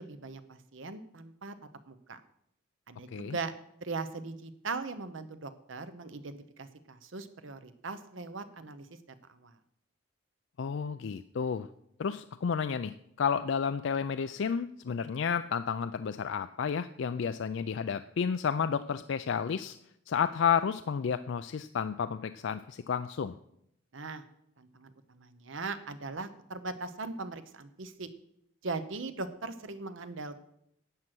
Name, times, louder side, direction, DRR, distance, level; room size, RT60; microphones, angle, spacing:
voice 1, 0.0-1.5 1.9-2.2 2.9-3.5 3.8-9.0 9.3-9.5 23.9-24.2 24.6-28.1 28.6-30.4, right 3 dB, 70° right, 11 dB, 0.9 m, -40 dB
voice 2, 10.6-11.7 12.0-19.8 20.1-23.4, left 6 dB, 65° left, 11 dB, 0.4 m, -31 dB
11.0 x 7.8 x 6.1 m, 0.75 s
head